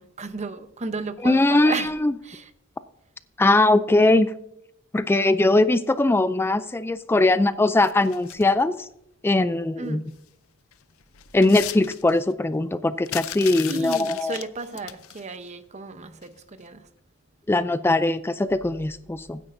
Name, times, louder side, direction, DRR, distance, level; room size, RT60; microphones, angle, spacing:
voice 1, 0.0-1.9 2.2-2.5 9.8-10.0 13.7-16.8, right 3 dB, 35° right, 0.8 m, -34 dB
voice 2, 1.2-2.1 3.4-4.4 4.9-8.9 9.2-10.0 11.3-14.4 17.5-19.4, left 2 dB, 10° left, 0.3 m, -20 dB
sound 1, 7.8-8.6 10.2-10.3 10.7-12.3 13.1-15.2 16.2-16.4 16.7-16.8, left 13 dB, 85° left, 0.5 m, -37 dB
15.5 x 9.9 x 2.6 m
head